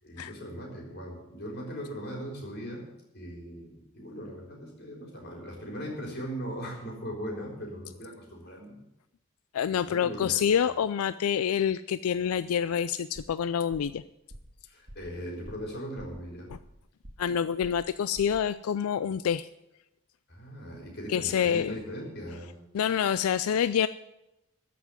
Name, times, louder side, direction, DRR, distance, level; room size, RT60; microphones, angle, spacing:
voice 1, 0.0-2.9 3.1-8.8 9.7-10.7 14.7-16.5 20.3-22.5, equal, 50° left, 0 dB, 4.0 m, -39 dB
voice 2, 9.5-14.0 17.2-19.5 21.1-21.8 22.7-23.9, left 8 dB, 90° left, 14 dB, 0.4 m, -27 dB
sound 1, 13.2-13.4 13.7-14.0 14.3-14.6 14.9-15.1 15.4-15.7 16.0-16.8 17.0-17.3 17.6-17.9 18.2-18.5, right 1 dB, 60° right, 1.8 m, -48 dB
13.0 x 5.9 x 9.7 m, 0.92 s
head